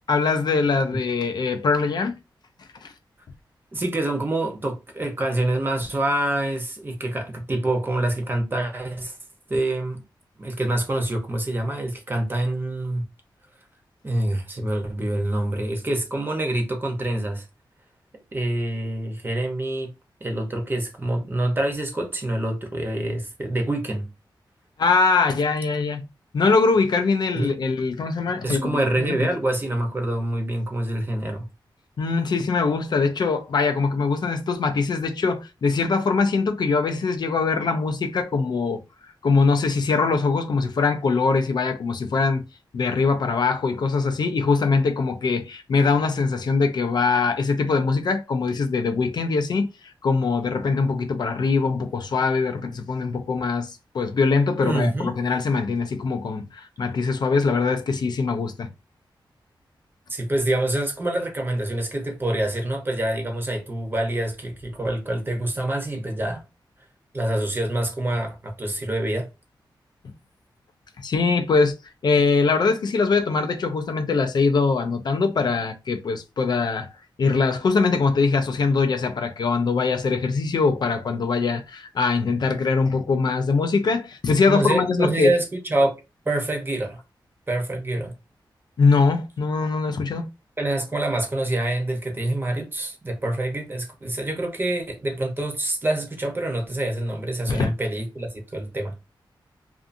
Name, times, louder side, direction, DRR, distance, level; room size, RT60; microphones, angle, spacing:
voice 1, 0.1-2.1 2.7-2.9 24.8-26.0 26.3-28.6 29.0-29.3 32.0-38.8 39.2-42.4 42.7-58.7 71.0-71.8 72.0-76.9 77.2-85.3 88.8-90.3 97.5-97.7, left 4 dB, 60° left, 0.4 m, -22 dB
voice 2, 3.7-9.2 9.5-10.0 10.4-13.0 14.0-17.5 18.3-19.9 20.2-24.1 27.3-27.5 28.4-31.5 54.6-55.1 60.1-66.4 67.1-69.3 84.5-86.0 86.2-87.0 87.5-88.1 90.6-98.9, right 1 dB, 25° right, 0.8 m, -26 dB
2.5 x 2.5 x 2.5 m
wide cardioid pair, 105°, 8 cm